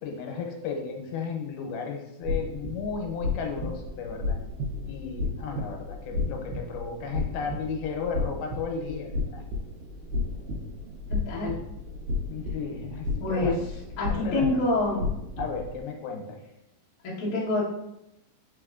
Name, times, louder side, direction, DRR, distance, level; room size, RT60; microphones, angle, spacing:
voice 1, 0.0-4.4 4.9-9.4 12.3-13.6 14.1-14.6 15.4-16.4, left 5 dB, 85° left, 2 dB, 2.6 m, -34 dB
sound 1, 2.2-15.8, left 3 dB, 80° right, 2.3 m, -33 dB
voice 2, 11.1-11.5 13.2-13.5 14.0-15.1 17.0-17.6, left 2 dB, 65° left, -6 dB, 1.3 m, -27 dB
5.1 x 4.1 x 2.4 m, 0.86 s
omnidirectional pair, 4.3 m